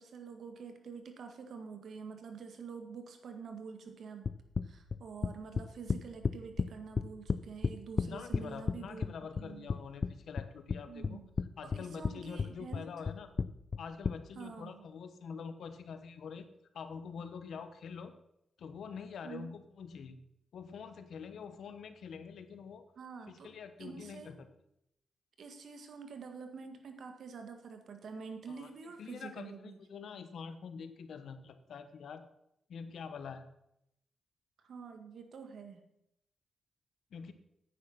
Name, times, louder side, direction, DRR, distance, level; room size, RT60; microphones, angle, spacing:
voice 1, 0.0-4.3 4.6-9.7 10.9-11.3 11.6-12.9 14.4-14.9 19.2-19.6 23.0-23.5 23.8-24.3 25.4-29.8 34.6-35.9, right 5 dB, 70° right, 6 dB, 1.7 m, -47 dB
sound 1, 4.2-6.7 7.0-8.8 9.0-10.1 10.4-11.5 11.7-12.1 12.4-14.1, left 5 dB, 45° left, 0.5 m, -32 dB
voice 2, 8.0-11.2 11.6-13.3 13.8-16.5 16.7-18.1 18.6-20.2 20.5-22.9 23.3-24.5 28.5-28.7 29.0-32.3 32.7-33.4 37.1-37.3, left 6 dB, 75° left, 10 dB, 1.1 m, -45 dB
9.8 x 9.1 x 5.8 m, 0.80 s
cardioid pair, 95°, 0 cm